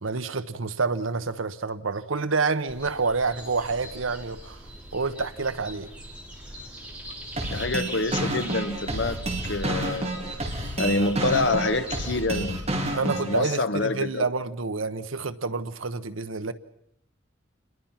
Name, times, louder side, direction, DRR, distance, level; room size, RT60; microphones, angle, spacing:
voice 1, 0.0-4.6 4.9-5.9 12.9-16.5, right 4 dB, 80° right, 1.1 m, -28 dB
sound 1, 2.7-12.3, equal, 5° right, 3.8 m, -41 dB
sound 2, 7.4-13.4, right 1 dB, 30° right, 4.4 m, -29 dB
voice 2, 7.5-9.2 9.4-10.3 10.8-12.6 13.0-14.3, left 2 dB, 60° left, 1.5 m, -27 dB
28.0 x 22.0 x 5.9 m
head